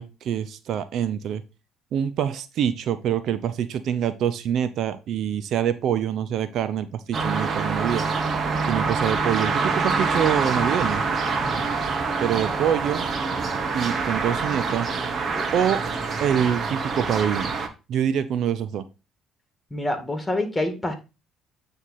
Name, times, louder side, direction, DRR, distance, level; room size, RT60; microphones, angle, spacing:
voice 1, 0.0-1.4 1.9-8.1 8.6-11.0 12.2-13.0 13.7-14.9 15.5-15.8 16.2-17.6 17.9-18.8, right 9 dB, 65° right, 13 dB, 0.5 m, -25 dB
sound 1, 7.1-17.7, right 4 dB, 45° right, 1.1 m, -25 dB
voice 2, 19.7-21.0, left 1 dB, 15° left, 6 dB, 2.1 m, -28 dB
8.9 x 3.3 x 4.1 m, 0.29 s
supercardioid pair, 65°, 0 cm